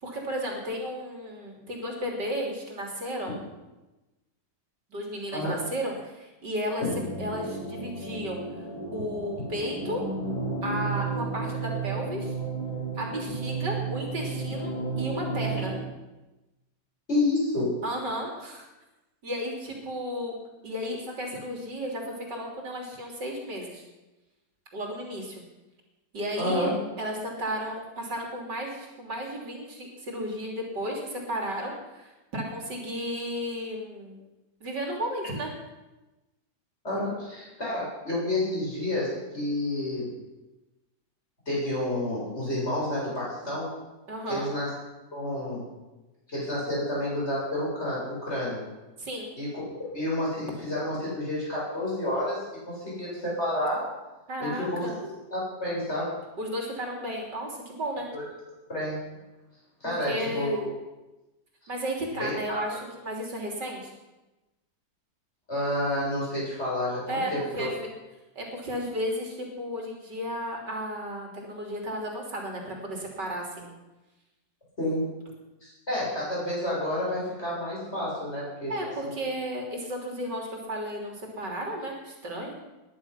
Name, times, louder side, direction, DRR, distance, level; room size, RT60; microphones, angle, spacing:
voice 1, 0.0-3.3 4.9-6.9 7.2-8.6 8.9-10.0 10.6-12.3 13.0-15.7 17.8-18.7 19.2-20.3 20.6-23.8 24.7-25.4 26.1-34.2 34.6-35.5 44.1-44.5 49.0-49.3 54.3-55.0 56.4-58.1 59.8-60.6 61.7-63.9 67.1-67.7 68.4-73.7 78.7-82.6, equal, 75° right, 0 dB, 3.8 m, -33 dB
sound 1, 6.9-15.8, right 3 dB, 55° left, 6.8 m, -33 dB
voice 2, 17.1-17.7 26.4-26.7 36.8-40.1 41.5-43.7 44.3-44.7 45.1-45.7 46.3-48.6 49.4-49.6 49.9-53.9 54.4-54.9 55.3-56.2 58.1-58.2 58.7-59.0 59.8-60.6 62.2-62.6 65.5-67.7 74.8-75.1 75.6-79.1, left 1 dB, 35° left, -6 dB, 8.2 m, -29 dB
20.0 x 11.5 x 5.8 m, 1.1 s
omnidirectional pair, 1.9 m